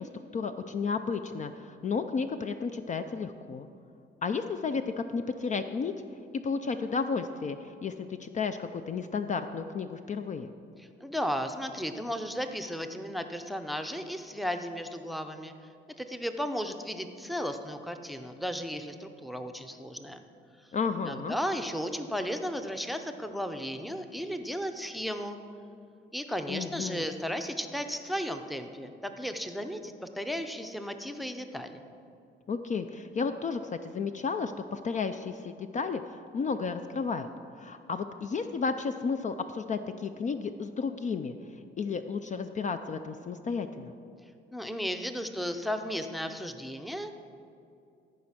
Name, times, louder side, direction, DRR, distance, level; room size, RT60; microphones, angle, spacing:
voice 1, 0.0-3.7 4.2-5.9 6.4-10.5 20.7-21.3 26.5-27.0 32.5-37.3 37.6-41.4 41.8-43.9, left 5 dB, 40° left, 8 dB, 0.4 m, -33 dB
voice 2, 10.8-15.5 16.0-20.2 21.0-25.4 26.1-31.9 44.5-47.2, equal, ahead, 7 dB, 0.6 m, -35 dB
14.0 x 5.2 x 5.8 m, 2.5 s
cardioid pair, 90°, 20 cm